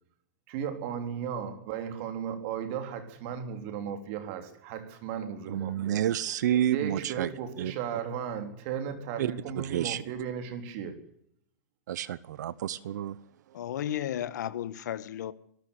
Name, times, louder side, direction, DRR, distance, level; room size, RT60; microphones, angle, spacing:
voice 1, 0.5-6.1 6.7-11.1, right 8 dB, 45° right, 3.6 m, -35 dB
voice 2, 5.5-7.3 7.6-7.7 9.2-10.0 11.9-13.2, right 11 dB, 75° right, 0.9 m, -30 dB
voice 3, 13.5-15.3, left 11 dB, 75° left, 1.5 m, -33 dB
24.5 x 13.0 x 8.3 m
supercardioid pair, 150°, 10 cm